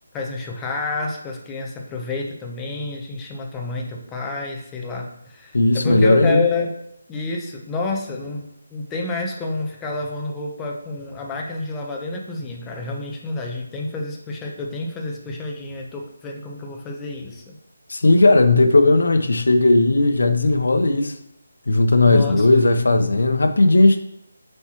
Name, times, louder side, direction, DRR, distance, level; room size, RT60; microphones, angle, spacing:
voice 1, 0.1-6.7 7.1-17.6 22.1-22.5, left 3 dB, 10° left, 0 dB, 0.8 m, -29 dB
voice 2, 5.5-6.4 17.9-21.1 21.7-24.0, left 2 dB, 80° left, 7 dB, 0.8 m, -16 dB
7.7 x 4.6 x 3.0 m, 0.76 s
figure-of-eight pair, 170°, 0 cm